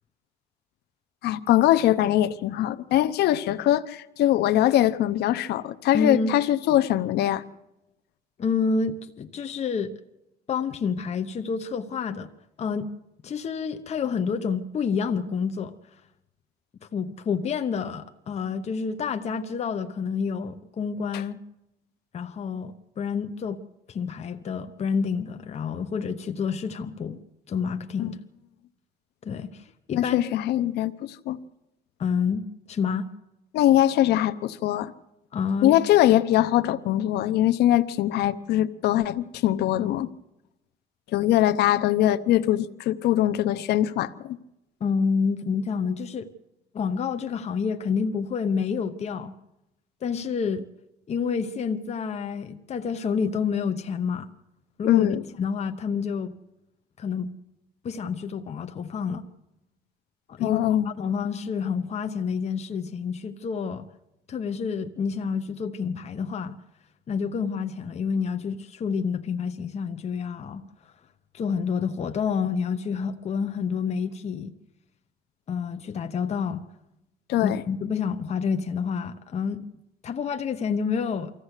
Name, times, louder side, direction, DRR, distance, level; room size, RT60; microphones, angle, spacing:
voice 1, 1.2-7.4 21.1-21.2 28.0-28.1 30.0-31.4 33.5-34.9 35.6-40.1 41.1-44.4 54.8-55.2 60.4-60.9 77.3-77.6, left 13 dB, 75° left, 0.8 m, -22 dB
voice 2, 5.9-6.3 8.4-9.9 10.5-12.3 12.6-12.9 13.2-15.7 16.9-21.4 22.1-23.6 23.9-27.2 27.5-28.2 29.2-30.2 32.0-32.4 32.7-33.1 35.3-35.7 44.8-46.3 46.7-49.3 50.0-50.6 51.1-54.3 54.8-55.1 55.4-56.4 57.0-57.3 57.8-59.2 60.4-63.9 64.3-66.6 67.1-70.6 71.3-74.5 75.5-76.6 77.4-79.6 80.0-81.3, left 6 dB, 40° left, 1.0 m, -28 dB
24.0 x 15.0 x 8.2 m
cardioid pair, 110°, 17 cm